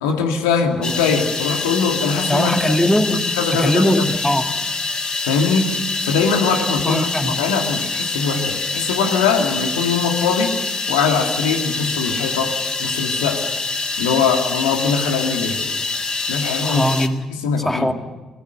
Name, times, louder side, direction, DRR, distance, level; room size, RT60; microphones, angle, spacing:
voice 1, 0.0-2.5 3.1-4.2 5.2-5.7 6.0-10.5 10.9-13.4 14.0-15.6 16.3-16.9 17.4-17.9, left 5 dB, 80° left, 2.2 m, -21 dB
sound 1, 0.8-17.1, left 3 dB, 35° left, 2.1 m, -25 dB
voice 2, 2.3-3.2 3.6-4.5 6.8-7.4 16.6-17.3 17.6-17.9, equal, 10° left, 2.2 m, -20 dB
26.0 x 20.0 x 6.8 m
hypercardioid pair, 45°, 2 cm